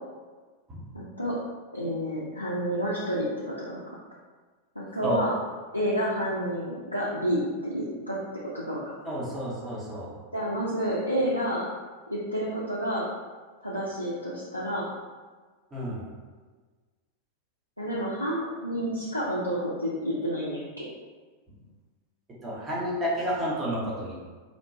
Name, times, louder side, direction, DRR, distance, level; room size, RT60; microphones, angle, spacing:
voice 1, 0.9-1.3 1.7-3.8 4.8-5.3 5.7-8.2 8.5-9.0 10.3-11.6 12.1-13.0 13.6-14.8 17.8-20.9, equal, 85° left, -7 dB, 0.4 m, -29 dB
voice 2, 9.0-10.1 15.7-16.0 22.4-24.2, equal, 20° right, -6 dB, 0.7 m, -30 dB
2.8 x 2.1 x 2.6 m, 1.4 s
figure-of-eight pair, 90°, 0 cm